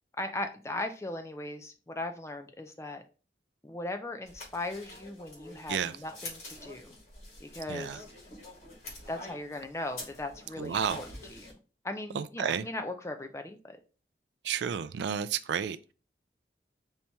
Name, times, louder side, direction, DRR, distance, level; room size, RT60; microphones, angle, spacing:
voice 1, 0.2-3.0 3.6-6.9 7.4-8.0 9.1-11.5 11.8-13.8, left 2 dB, 15° left, 0.4 m, -38 dB
sound 1, 4.3-11.5, left 2 dB, 40° left, 1.5 m, -47 dB
voice 2, 10.6-11.0 12.1-12.6 14.4-15.9, right 7 dB, 80° right, 0.3 m, -31 dB
4.3 x 2.8 x 3.4 m
head